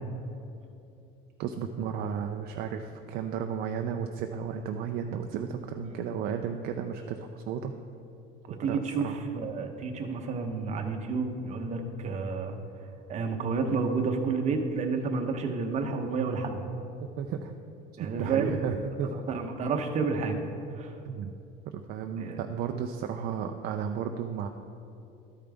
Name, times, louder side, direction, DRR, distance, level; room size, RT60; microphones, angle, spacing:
voice 1, 1.4-7.7 8.6-9.2 17.2-17.5 18.0-19.1 21.0-21.3 21.7-24.5, right 7 dB, 50° right, 5 dB, 0.4 m, -33 dB
voice 2, 8.5-12.6 13.1-16.6 18.0-18.6 19.0-20.4 20.7-20.9 22.2-22.4, right 4 dB, 35° right, 4 dB, 0.8 m, -30 dB
12.5 x 5.1 x 3.4 m, 2.8 s
cardioid pair, 130°, 20 cm